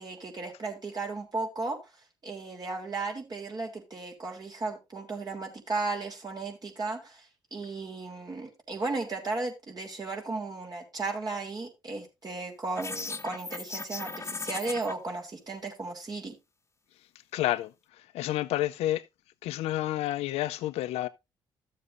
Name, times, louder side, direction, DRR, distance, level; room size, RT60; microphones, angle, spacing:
voice 1, 0.0-1.8 2.2-7.2 7.5-16.3, right 3 dB, 40° right, 3.3 m, -35 dB
sound 1, 12.7-14.9, left 3 dB, 25° left, 0.9 m, -37 dB
voice 2, 17.3-17.7 18.1-19.0 19.4-21.1, left 14 dB, 80° left, 0.6 m, -29 dB
13.5 x 7.4 x 2.6 m
supercardioid pair, 55°, 10 cm